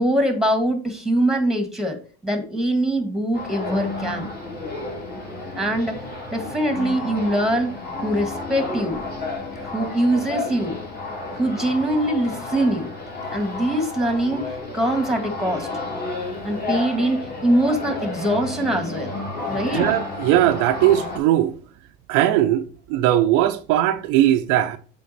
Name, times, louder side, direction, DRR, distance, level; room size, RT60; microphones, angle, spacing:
voice 1, 0.0-2.0 2.2-4.3 5.5-6.0 6.3-9.0 9.7-10.8 11.3-12.9 13.3-15.7 16.4-19.2 19.5-19.9, right 1 dB, ahead, 1.8 m, -23 dB
sound 1, 3.3-21.2, left 2 dB, 30° left, 3.3 m, -31 dB
voice 2, 19.7-21.5 22.1-24.8, right 13 dB, 70° right, 0.7 m, -19 dB
7.5 x 3.8 x 4.3 m
supercardioid pair, 90°, 33 cm